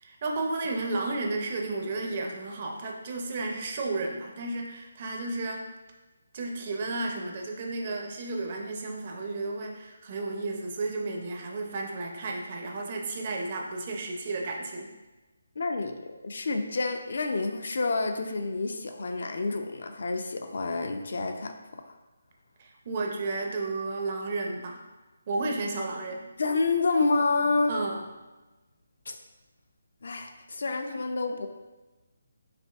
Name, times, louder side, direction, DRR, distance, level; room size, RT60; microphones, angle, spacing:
voice 1, 0.0-5.7 6.3-14.9 22.6-24.8 25.3-26.2 27.7-28.0, right 2 dB, 35° right, 0 dB, 0.5 m, -32 dB
voice 2, 15.6-15.9 16.2-21.5 26.4-27.8 29.1-29.2 30.0-31.5, left 3 dB, 65° left, 6 dB, 0.4 m, -28 dB
4.9 x 2.6 x 2.3 m, 1.1 s
hypercardioid pair, 165°, 0 cm